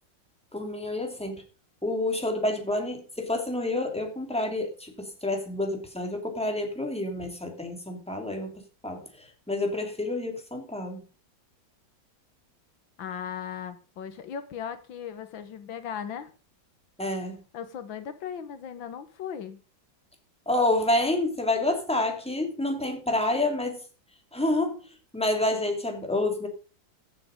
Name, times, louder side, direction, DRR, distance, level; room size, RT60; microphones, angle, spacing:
voice 1, 0.5-1.4 1.8-8.5 8.8-11.0 17.0-17.4 20.5-23.8 24.3-24.8 25.1-26.5, left 2 dB, 5° left, 3 dB, 2.7 m, -28 dB
voice 2, 13.0-16.3 17.5-19.6, left 8 dB, 85° left, 11 dB, 1.9 m, -37 dB
14.5 x 7.8 x 5.1 m, 0.36 s
omnidirectional pair, 2.1 m